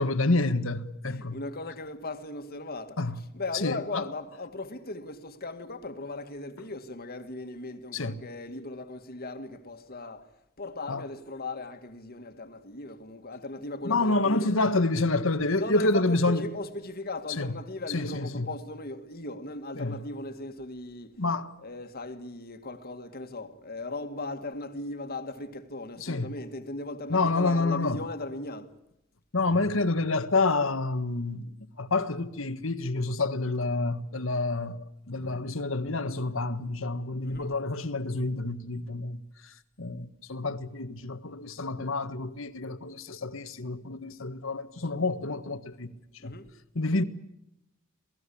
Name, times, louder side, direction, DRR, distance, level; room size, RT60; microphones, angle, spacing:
voice 1, 0.0-1.4 3.0-3.2 3.5-4.0 7.9-8.2 10.9-11.0 13.8-16.4 17.4-17.5 17.9-18.5 19.8-20.0 21.2-21.5 26.0-26.3 27.1-28.0 29.3-34.8 35.1-45.9 46.2-46.3 46.7-47.0, left 2 dB, 70° left, 1.6 m, -28 dB
voice 2, 1.0-10.3 10.6-14.6 15.6-21.1 21.6-28.7 37.2-37.5 46.2-46.5, left 2 dB, 50° left, 2.1 m, -38 dB
27.5 x 18.5 x 8.6 m
head